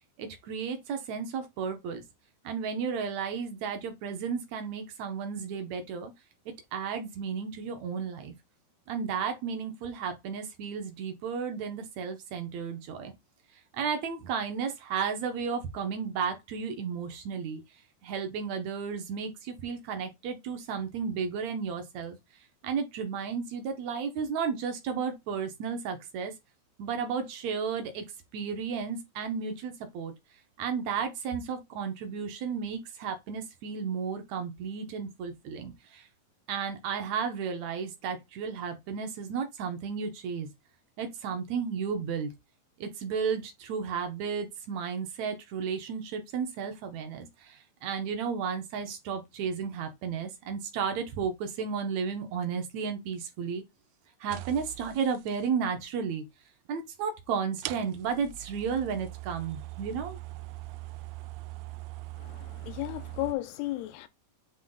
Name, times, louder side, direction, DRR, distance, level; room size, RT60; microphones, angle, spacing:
voice 1, 0.2-2.0 2.4-6.1 6.5-8.3 8.9-13.1 13.7-17.6 18.0-22.2 22.6-26.3 26.8-28.0 28.3-30.1 30.6-36.0 36.5-40.5 41.0-42.3 42.8-53.6 54.2-56.2 56.7-60.2, right 6 dB, 70° right, 1.7 m, -33 dB
sound 1, 54.3-55.4 56.7-56.8 57.6-63.4, right 19 dB, 85° right, 2.0 m, -42 dB
voice 2, 62.2-64.1, left 16 dB, 90° left, 2.8 m, -34 dB
9.2 x 3.1 x 3.9 m
omnidirectional pair, 4.5 m